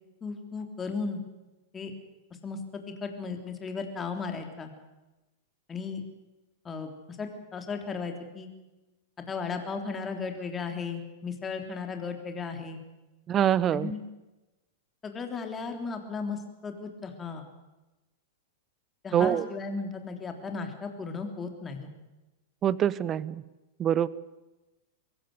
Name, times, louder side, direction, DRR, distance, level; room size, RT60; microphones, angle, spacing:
voice 1, 0.2-1.2 1.7-1.9 2.4-4.7 5.7-6.0 6.6-8.5 9.3-12.8 13.7-14.0 15.0-17.4 19.0-21.9, left 4 dB, 20° left, 5 dB, 3.5 m, -35 dB
voice 2, 13.3-13.9 19.1-19.5 22.6-23.4 23.8-24.1, right 10 dB, 30° right, 20 dB, 0.9 m, -25 dB
23.0 x 15.5 x 9.6 m, 1.1 s
hypercardioid pair, 100°, 0 cm